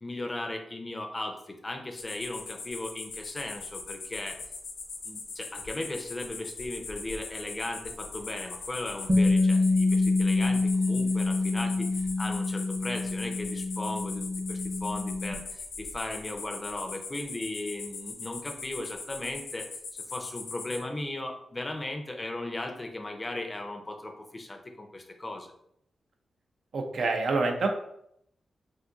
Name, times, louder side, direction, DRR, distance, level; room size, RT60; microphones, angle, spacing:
voice 1, 0.0-4.4 5.0-25.5, left 2 dB, 25° left, 4 dB, 0.4 m, -37 dB
sound 1, 2.0-20.8, left 4 dB, 80° left, 0.5 m, -41 dB
Bass guitar, 9.1-15.3, left 3 dB, 20° right, 0.7 m, -26 dB
voice 2, 26.7-27.7, right 3 dB, 70° right, 3 dB, 0.5 m, -26 dB
2.6 x 2.4 x 3.8 m, 0.74 s
cardioid pair, 95°, 0 cm